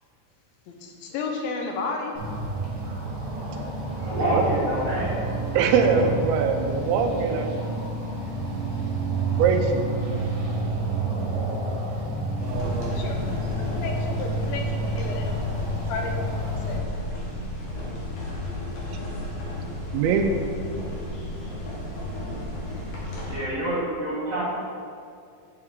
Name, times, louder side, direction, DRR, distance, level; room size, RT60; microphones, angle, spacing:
voice 1, 0.7-2.1 12.8-13.2 13.7-15.4 15.9-16.8, left 4 dB, 85° left, 2 dB, 2.4 m, -32 dB
sound 1, 2.2-16.8, right 2 dB, 75° right, 2.8 m, -29 dB
voice 2, 3.8-5.6 23.2-24.5, equal, 55° right, -9 dB, 2.1 m, -27 dB
voice 3, 5.6-7.5 9.3-9.9 12.4-13.1 19.9-20.4, right 5 dB, 90° right, 4 dB, 2.5 m, -23 dB
sound 2, 12.4-23.4, left 1 dB, 60° left, 2.2 m, -33 dB
8.6 x 4.6 x 3.6 m, 2.3 s
omnidirectional pair, 4.3 m